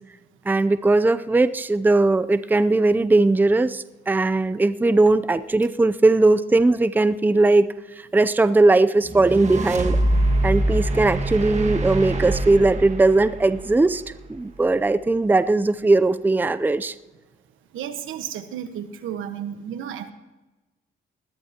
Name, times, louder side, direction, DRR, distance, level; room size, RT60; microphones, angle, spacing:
voice 1, 0.5-7.7 8.1-10.0 10.4-14.0 14.3-16.9, right 2 dB, 10° right, 13 dB, 0.5 m, -19 dB
sound 1, 9.0-14.4, right 1 dB, 35° right, 1.7 m, -24 dB
voice 2, 17.7-20.1, right 9 dB, 85° right, 9 dB, 1.3 m, -32 dB
20.5 x 14.5 x 2.9 m, 1.1 s
cardioid pair, 90°, 20 cm